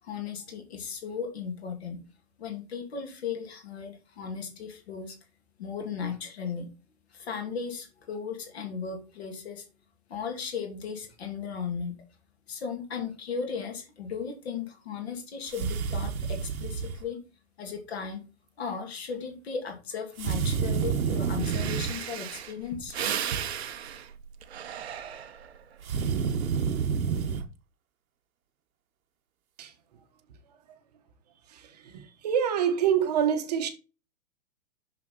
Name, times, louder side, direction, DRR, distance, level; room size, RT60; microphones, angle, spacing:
voice 1, 0.0-2.0 2.4-5.2 5.6-6.7 7.1-9.7 10.1-12.0 12.5-17.2 17.6-18.2 18.6-23.0, left 6 dB, 45° left, 2.6 m, -36 dB
sound 1, 15.5-17.0 20.2-22.0 25.8-27.5, right 6 dB, 75° right, 1.1 m, -29 dB
Breathing, 21.1-21.2 21.4-25.6 26.1-26.5, right 9 dB, 50° right, 0.8 m, -35 dB
voice 2, 31.5-33.7, right 8 dB, 30° right, 1.1 m, -26 dB
6.4 x 6.3 x 3.9 m
hypercardioid pair, 175°, 43 cm